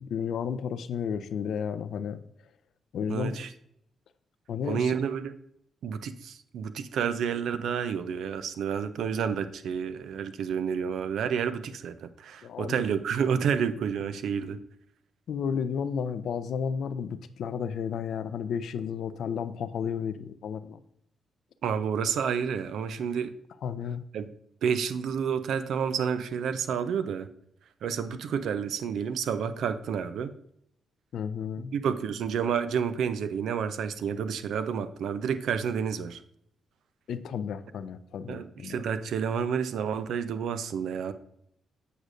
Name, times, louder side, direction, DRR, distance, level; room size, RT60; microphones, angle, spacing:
voice 1, 0.0-2.2 2.9-3.4 4.5-5.0 12.4-12.8 15.3-20.8 23.6-24.0 31.1-31.7 37.1-38.8, left 7 dB, 70° left, 13 dB, 0.4 m, -32 dB
voice 2, 3.1-3.5 4.7-5.3 5.8-14.6 21.6-23.3 24.1-24.3 24.6-27.3 27.8-30.3 31.7-36.2 38.3-41.1, right 7 dB, 75° right, 12 dB, 0.4 m, -30 dB
8.0 x 5.0 x 2.5 m, 0.74 s
supercardioid pair, 50°, 0 cm